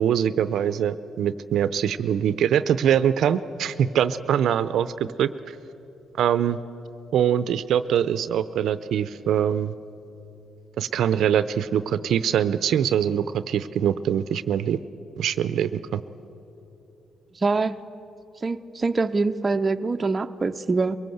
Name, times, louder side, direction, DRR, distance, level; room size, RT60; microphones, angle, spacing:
voice 1, 0.0-5.3 6.2-6.6 7.1-9.7 10.8-14.8 15.2-16.0, right 9 dB, 70° right, 14 dB, 0.6 m, -23 dB
voice 2, 17.4-17.8 18.4-21.0, right 3 dB, 30° right, 8 dB, 0.6 m, -24 dB
22.5 x 18.0 x 7.9 m, 3.0 s
cardioid pair, 90°, 0 cm